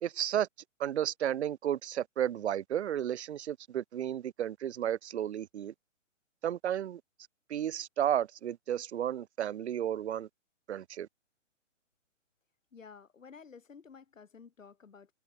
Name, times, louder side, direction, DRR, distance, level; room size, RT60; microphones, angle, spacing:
voice 1, 0.0-0.5 0.8-5.7 6.4-7.0 7.5-10.3 10.7-11.1, right 10 dB, 60° right, 0.6 m, -33 dB
voice 2, 12.7-15.1, left 6 dB, 80° left, 6.4 m, -52 dB
hypercardioid pair, 155°, 38 cm